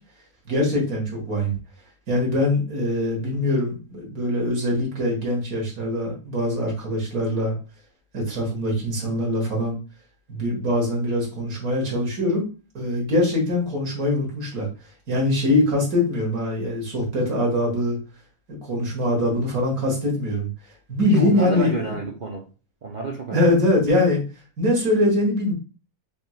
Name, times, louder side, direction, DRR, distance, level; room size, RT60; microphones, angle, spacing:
voice 1, 0.5-1.6 2.1-7.6 8.1-9.8 10.3-12.5 12.7-14.7 15.1-18.0 18.6-20.5 20.9-21.9 23.3-24.2 24.6-25.5, left 1 dB, 65° right, 1.9 m, -23 dB
voice 2, 21.1-22.5 22.8-23.6, right 4 dB, 80° right, 0.4 m, -30 dB
5.2 x 3.1 x 2.3 m
omnidirectional pair, 1.7 m